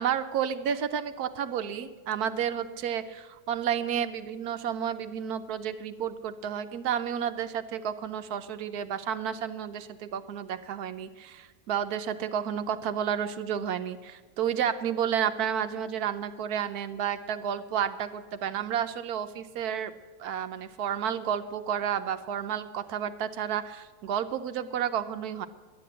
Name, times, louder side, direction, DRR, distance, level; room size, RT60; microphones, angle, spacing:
voice 1, 0.0-19.9 20.2-25.5, right 8 dB, 75° right, 11 dB, 1.2 m, -31 dB
11.5 x 9.2 x 8.6 m, 1.4 s
omnidirectional pair, 1.7 m